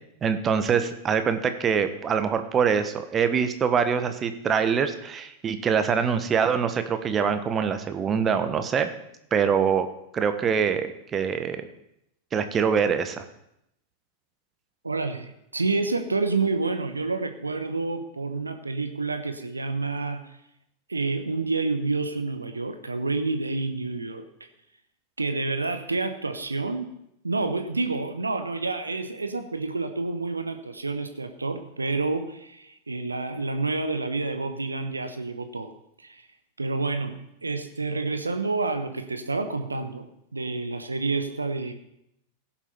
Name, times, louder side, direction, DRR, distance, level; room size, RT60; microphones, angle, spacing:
voice 1, 0.2-8.9 9.3-9.9 10.1-11.7 12.3-13.2, right 6 dB, 25° right, 9 dB, 1.2 m, -24 dB
voice 2, 14.8-20.3 20.9-24.2 25.2-26.9 27.2-35.7 36.0-36.3 36.6-40.1 40.3-41.7, right 3 dB, 80° right, 8 dB, 1.1 m, -29 dB
16.5 x 7.4 x 5.5 m, 0.79 s
figure-of-eight pair, 90°, 0 cm